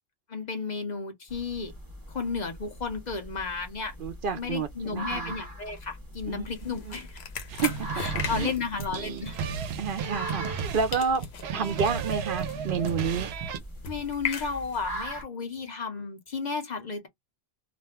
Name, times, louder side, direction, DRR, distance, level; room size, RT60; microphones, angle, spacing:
voice 1, 0.3-1.7 2.1-3.9 4.3-7.2 7.6-7.7 7.9-9.4 13.9-17.1, left 5 dB, 50° left, 0.7 m, -33 dB
sound 1, 1.3-15.2, right 1 dB, 20° right, 0.8 m, -42 dB
voice 2, 4.0-5.4 6.3-6.5 6.8-7.0 7.5-7.9 8.1-8.5 9.8-11.2 11.5-13.3, right 6 dB, 65° right, 0.7 m, -30 dB
sound 2, 6.5-10.7 10.9-15.0, left 6 dB, 90° left, 1.0 m, -39 dB
sound 3, 7.5-13.6, right 6 dB, 85° right, 0.8 m, -33 dB
2.5 x 2.1 x 3.4 m
omnidirectional pair, 1.0 m